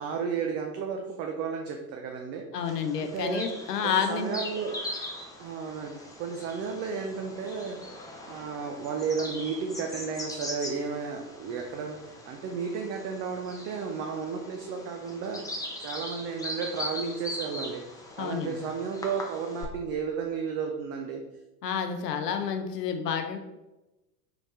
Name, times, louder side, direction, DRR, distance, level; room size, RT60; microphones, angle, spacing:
voice 1, 0.0-3.5 3.8-4.8 5.4-7.8 8.3-17.8 18.2-21.2, right 5 dB, 30° right, 3 dB, 0.5 m, -33 dB
voice 2, 2.5-4.3 18.2-18.6 21.6-23.4, left 7 dB, 75° left, 7 dB, 0.7 m, -29 dB
Bird vocalization bird call bird song, 2.7-19.7, left 1 dB, 5° left, 0.6 m, -40 dB
4.1 x 4.0 x 3.2 m, 1.0 s
figure-of-eight pair, 75°, 48 cm